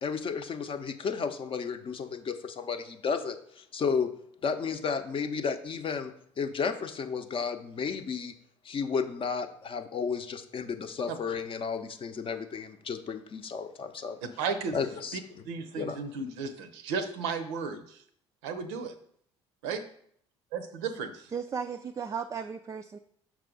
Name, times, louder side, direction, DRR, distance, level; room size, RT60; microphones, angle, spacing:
voice 1, 0.0-4.1 4.4-6.1 6.4-8.3 8.6-14.2 14.7-15.4 15.8-16.0, left 5 dB, 35° left, 7 dB, 0.7 m, -33 dB
voice 2, 14.4-14.8 15.5-18.0 18.4-18.9 19.6-19.8 20.8-21.3, right 5 dB, 70° right, 9 dB, 0.6 m, -34 dB
voice 3, 21.3-23.0, right 6 dB, 20° right, 7 dB, 0.3 m, -35 dB
5.9 x 4.8 x 3.8 m, 0.65 s
figure-of-eight pair, 55°, 15 cm